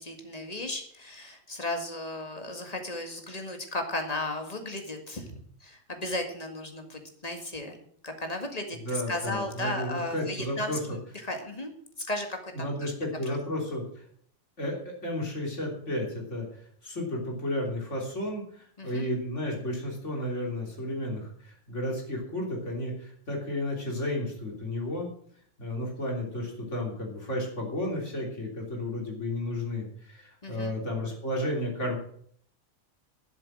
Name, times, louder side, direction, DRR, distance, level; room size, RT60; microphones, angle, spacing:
voice 1, 0.0-7.8 8.0-11.7 12.0-12.9 13.3-13.4 18.8-19.1 30.4-30.8, left 2 dB, 30° left, 4 dB, 2.0 m, -35 dB
voice 2, 8.8-10.8 12.5-14.0 14.6-16.5 16.8-25.1 25.6-32.0, left 1 dB, 60° left, 0 dB, 3.6 m, -32 dB
11.5 x 7.6 x 7.6 m, 0.62 s
omnidirectional pair, 1.4 m